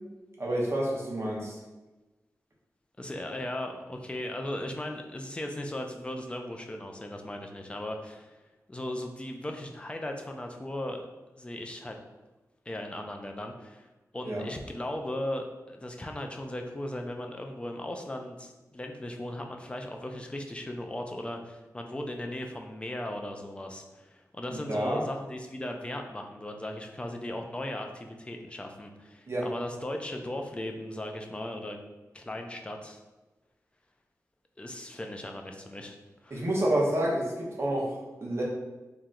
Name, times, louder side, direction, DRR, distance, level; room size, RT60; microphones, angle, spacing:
voice 1, 0.4-1.6 14.2-14.4 24.7-25.0 29.3-29.5 36.3-38.4, right 1 dB, 45° right, -3 dB, 0.9 m, -29 dB
voice 2, 3.0-8.4 8.7-11.0 11.4-12.0 12.7-13.9 14.1-31.8 32.1-33.0 34.6-36.0 36.2-36.4, left 1 dB, 15° left, 3 dB, 0.4 m, -37 dB
3.1 x 2.9 x 3.7 m, 1.1 s
wide cardioid pair, 120°, 6 cm